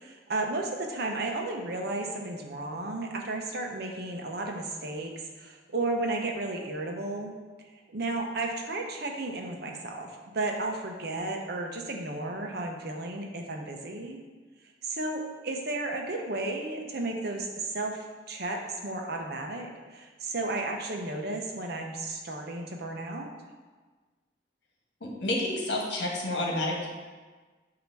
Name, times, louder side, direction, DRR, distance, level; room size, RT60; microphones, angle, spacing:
voice 1, 0.0-7.3 7.9-14.2 14.8-23.3, right 2 dB, 60° right, 2 dB, 0.9 m, -33 dB
voice 2, 25.0-26.9, left 1 dB, 80° left, -2 dB, 1.6 m, -29 dB
8.5 x 3.0 x 6.1 m, 1.4 s
head